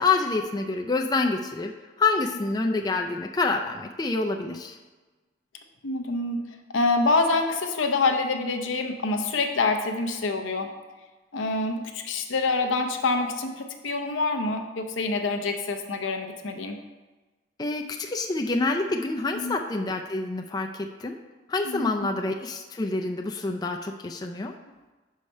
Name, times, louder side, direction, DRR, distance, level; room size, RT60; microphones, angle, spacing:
voice 1, 0.0-1.7 2.0-4.8 17.6-20.7 21.0-21.2 21.5-24.5, left 3 dB, 20° left, 2 dB, 0.4 m, -27 dB
voice 2, 5.8-6.4 6.7-10.7 11.3-16.8 19.3-19.5 21.6-21.9, left 3 dB, 85° left, 6 dB, 0.7 m, -26 dB
5.6 x 4.8 x 5.3 m, 1.2 s
head